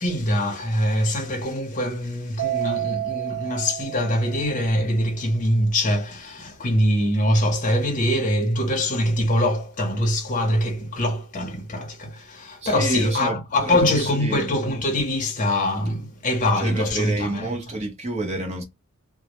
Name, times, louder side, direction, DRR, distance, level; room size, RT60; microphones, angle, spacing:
voice 1, 0.0-17.5, left 1 dB, 35° left, 0.7 m, -23 dB
Mallet percussion, 2.4-4.8, right 14 dB, 55° right, 0.3 m, -30 dB
voice 2, 12.6-14.5 16.5-18.6, right 2 dB, 30° right, 0.7 m, -29 dB
2.1 x 2.0 x 2.9 m
head